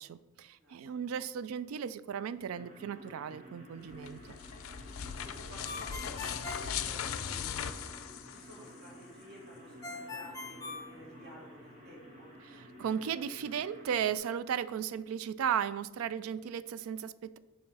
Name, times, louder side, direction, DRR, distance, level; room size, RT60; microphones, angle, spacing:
voice 1, 0.0-4.3 12.4-17.4, right 8 dB, 90° right, 15 dB, 0.3 m, -35 dB
voice 2, 0.6-1.1 5.2-7.9 8.3-12.3, equal, 50° right, -4 dB, 2.2 m, -53 dB
sound 1, 2.5-14.2, equal, 35° right, 1.5 m, -52 dB
sound 2, 3.9-8.9, left 8 dB, 80° left, 0.4 m, -39 dB
Ringtone, 5.6-7.6 9.8-11.7, left 3 dB, 15° left, 0.5 m, -43 dB
7.2 x 3.1 x 4.7 m, 1.0 s
head